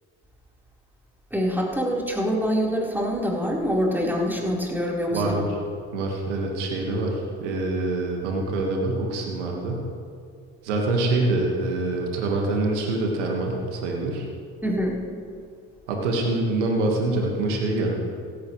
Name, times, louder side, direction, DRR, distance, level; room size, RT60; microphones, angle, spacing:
voice 1, 1.3-5.4 14.6-15.0, equal, 5° right, -4 dB, 4.1 m, -25 dB
voice 2, 5.1-5.5 5.9-9.8 10.6-14.2 15.9-18.0, right 2 dB, 90° right, 0 dB, 1.7 m, -25 dB
16.5 x 15.5 x 3.2 m, 2.2 s
hypercardioid pair, 60°, 34 cm